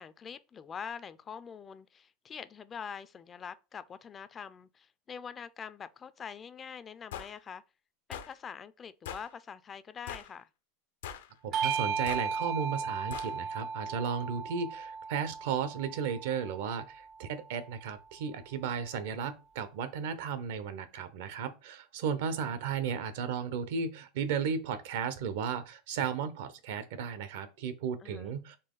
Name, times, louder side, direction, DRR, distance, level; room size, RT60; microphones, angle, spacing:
voice 1, 0.0-7.6 8.1-10.5 22.4-22.6 28.0-28.3, left 7 dB, 20° left, 0.3 m, -44 dB
sound 1, 7.1-7.3 8.1-8.3 9.0-9.3 10.1-10.3 11.0-11.3 12.1-12.3 13.1-13.3, left 9 dB, 85° left, 0.6 m, -41 dB
voice 2, 11.4-28.6, right 6 dB, 70° right, 0.7 m, -34 dB
Bell / Doorbell, 11.5-16.4, right 6 dB, 40° right, 0.4 m, -35 dB
4.1 x 3.0 x 3.8 m
supercardioid pair, 140°, 0 cm